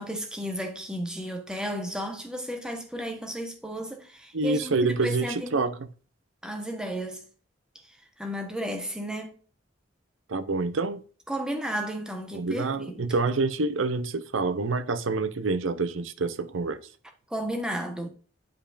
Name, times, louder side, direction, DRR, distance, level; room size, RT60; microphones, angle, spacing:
voice 1, 0.0-5.7 6.4-7.2 8.2-9.3 11.3-13.0 17.3-18.1, equal, 5° right, 1.1 m, -33 dB
voice 2, 4.3-5.9 10.3-11.0 12.3-16.8, right 3 dB, 85° right, 0.7 m, -27 dB
9.0 x 5.2 x 2.5 m
head